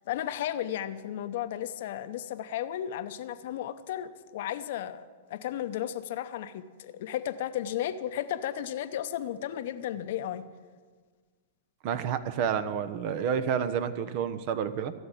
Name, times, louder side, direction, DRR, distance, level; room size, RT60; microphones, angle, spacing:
voice 1, 0.1-10.4, left 11 dB, 60° left, 11 dB, 0.8 m, -34 dB
voice 2, 11.8-14.9, right 7 dB, 50° right, 12 dB, 1.0 m, -29 dB
14.0 x 7.1 x 9.8 m, 1.5 s
hypercardioid pair, 115°, 0 cm